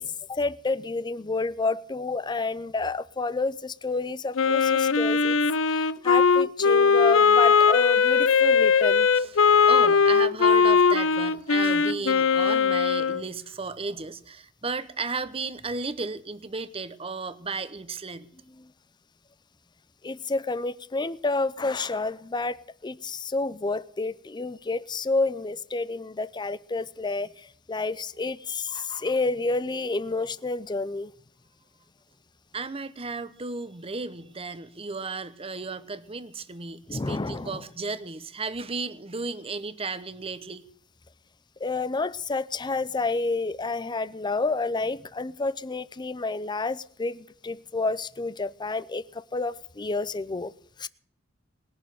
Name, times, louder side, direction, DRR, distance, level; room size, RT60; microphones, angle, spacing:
voice 1, 0.0-5.4 5.7-9.1 18.6-18.7 20.0-31.1 36.9-37.6 41.6-50.5 50.8-50.9, left 3 dB, 20° left, 0.5 m, -29 dB
Wind instrument woodwind instrument, 4.4-13.2, left 5 dB, 75° left, 0.6 m, -20 dB
voice 2, 9.1-18.3 32.5-40.7, right 4 dB, 30° right, 0.9 m, -34 dB
20.5 x 6.9 x 9.2 m
head